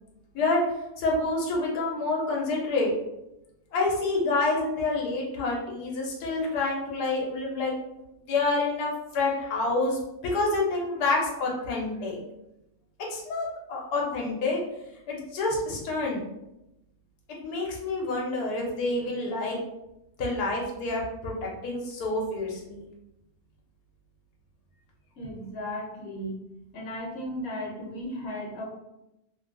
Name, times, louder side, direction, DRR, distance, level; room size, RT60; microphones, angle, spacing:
voice 1, 1.0-2.9 3.7-7.7 8.3-12.2 13.1-14.6 15.1-16.2 17.4-19.6 20.2-22.8, left 3 dB, 85° left, -2 dB, 1.2 m, -28 dB
voice 2, 25.2-26.4 26.7-28.7, equal, 65° left, -2 dB, 1.2 m, -35 dB
3.1 x 2.2 x 2.4 m, 0.89 s
omnidirectional pair, 1.7 m